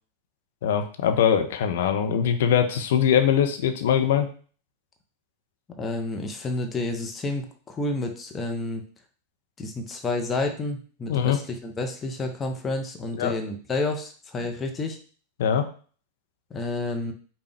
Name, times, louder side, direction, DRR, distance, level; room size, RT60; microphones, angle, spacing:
voice 1, 0.6-4.3 11.1-11.4 13.1-13.3 15.4-15.7, left 8 dB, 55° left, 6 dB, 0.6 m, -22 dB
voice 2, 5.8-8.8 9.6-15.0 16.5-17.1, left 2 dB, 20° left, 4 dB, 0.7 m, -30 dB
5.0 x 2.2 x 3.4 m, 0.42 s
figure-of-eight pair, 90°, 0 cm